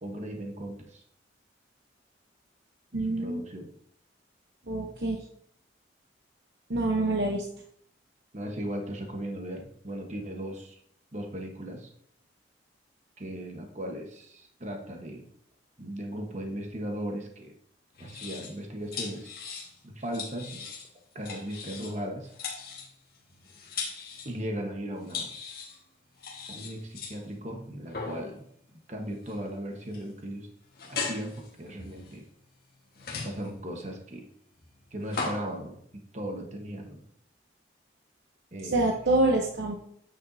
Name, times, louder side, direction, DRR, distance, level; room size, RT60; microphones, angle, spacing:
voice 1, 0.0-1.0 2.9-3.7 8.3-10.8 11.1-11.9 13.2-15.3 15.8-17.5 18.0-19.3 19.8-20.7 21.1-22.3 24.2-25.3 26.5-28.5 28.7-30.5 30.9-32.2 33.2-34.2 34.9-37.0 38.5-38.9, equal, 40° right, 2 dB, 1.1 m, -37 dB
voice 2, 2.9-3.4 4.7-5.2 6.7-7.5 38.7-39.8, right 2 dB, 65° right, 0 dB, 0.9 m, -26 dB
sound 1, 17.9-18.6 18.9-19.8 20.1-20.9 21.2-22.0 22.2-24.4 25.1-25.8 26.2-27.2 27.8-28.4 29.2-29.5 29.8-30.0 30.8-32.4 32.9-33.6 34.6-35.5, left 4 dB, 55° left, 1.5 m, -38 dB
8.6 x 6.6 x 2.7 m, 0.65 s
head